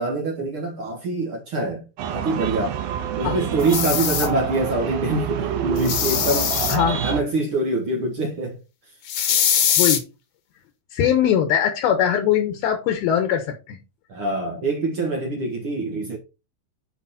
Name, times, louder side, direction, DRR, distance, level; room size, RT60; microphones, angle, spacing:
voice 1, 0.0-2.8 3.2-6.5 6.9-8.6 14.1-16.2, right 2 dB, 55° right, 1.5 m, -25 dB
sound 1, 2.0-7.2, right 9 dB, 80° right, 3.1 m, -27 dB
sound 2, 3.6-4.3 5.8-6.8 9.1-10.0, left 9 dB, 60° left, 2.1 m, -21 dB
voice 2, 6.7-7.0 9.8-10.0 10.9-13.8, left 9 dB, 75° left, 3.0 m, -21 dB
9.8 x 5.4 x 4.2 m
omnidirectional pair, 4.4 m